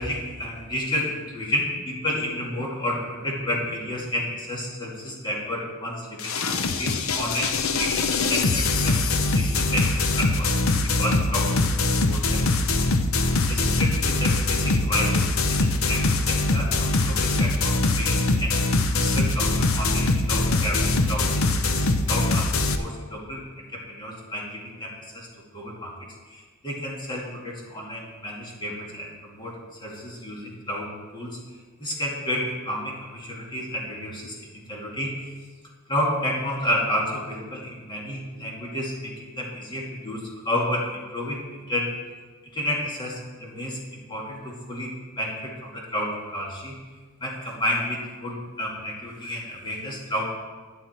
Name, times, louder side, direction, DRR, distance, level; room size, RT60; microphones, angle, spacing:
voice 1, 0.0-11.5 12.1-12.5 13.5-16.0 16.3-18.5 18.9-25.3 25.5-25.9 26.3-29.5 29.8-30.9 31.1-31.3 31.8-35.3 35.9-41.4 41.7-41.9 42.5-44.9 45.2-46.7 47.2-50.4, left 1 dB, 20° left, -3 dB, 2.5 m, -31 dB
sound 1, 6.2-22.8, left 2 dB, 80° left, 0.8 m, -23 dB
12.0 x 10.0 x 4.5 m, 1.4 s
head